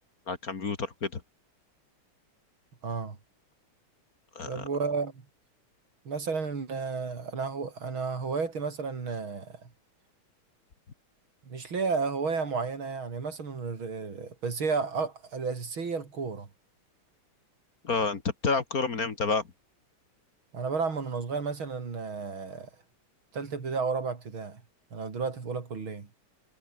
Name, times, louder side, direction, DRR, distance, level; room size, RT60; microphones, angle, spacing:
voice 1, 0.3-1.2 4.4-4.6 17.8-19.4, left 4 dB, 45° left, 2.2 m, -29 dB
voice 2, 2.8-3.2 4.5-5.2 6.1-9.7 11.5-16.5 20.5-22.7 23.3-24.6 24.9-26.1, right 4 dB, 70° right, 4.1 m, -32 dB
omnidirectional pair, 2.4 m